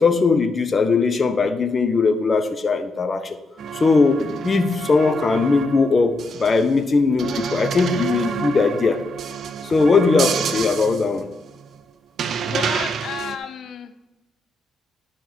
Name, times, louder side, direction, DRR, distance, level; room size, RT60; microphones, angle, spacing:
voice 1, 0.0-3.4 3.7-9.0 9.6-11.3, left 4 dB, 35° left, 8 dB, 1.2 m, -19 dB
sound 1, 3.6-6.8 7.2-11.8 12.2-13.4, right 7 dB, 65° right, 0.7 m, -29 dB
voice 2, 12.4-13.9, left 8 dB, 65° left, 10 dB, 0.9 m, -32 dB
10.5 x 6.2 x 4.7 m, 1.0 s
cardioid pair, 75°, 0 cm